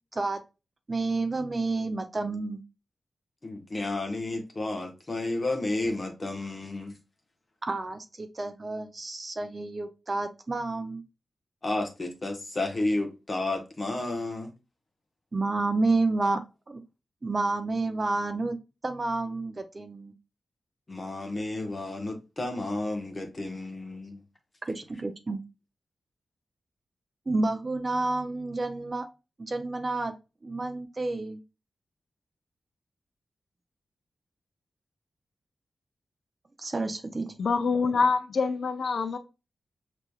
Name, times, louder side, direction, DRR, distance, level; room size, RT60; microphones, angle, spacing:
voice 1, 0.9-2.6 7.6-11.0 15.3-16.8 17.2-18.6 18.8-20.1 24.6-25.4 27.3-29.1 29.4-30.1 30.4-31.4 36.6-37.3, right 3 dB, 25° right, 0.4 m, -30 dB
voice 2, 3.4-7.0 11.6-14.5 20.9-24.2, left 2 dB, 25° left, 1.0 m, -32 dB
voice 3, 37.4-39.2, left 4 dB, 55° left, 0.5 m, -25 dB
6.6 x 3.1 x 2.3 m
wide cardioid pair, 175°, 0 cm